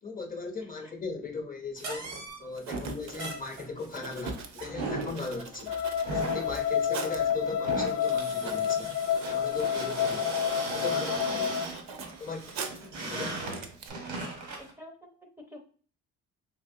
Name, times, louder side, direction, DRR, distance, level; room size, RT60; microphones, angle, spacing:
voice 1, 0.0-5.7 6.1-8.9 9.3-10.2 10.6-11.5 12.2-12.5 13.0-13.3, left 3 dB, 30° left, 4 dB, 0.8 m, -38 dB
voice 2, 0.6-0.9 10.1-10.3 11.9-12.0 13.1-13.4 14.6-15.6, left 1 dB, 5° right, 0 dB, 0.5 m, -48 dB
sound 1, 1.8-14.7, right 3 dB, 90° right, 1.0 m, -38 dB
Writing, 2.3-2.4 2.5-7.3 7.9-8.0 8.2-13.0 13.3-13.9, right 6 dB, 65° right, 0.6 m, -44 dB
sound 2, 5.7-11.6, left 8 dB, 75° left, 0.5 m, -29 dB
3.3 x 3.0 x 2.6 m, 0.42 s
cardioid pair, 90°, 30 cm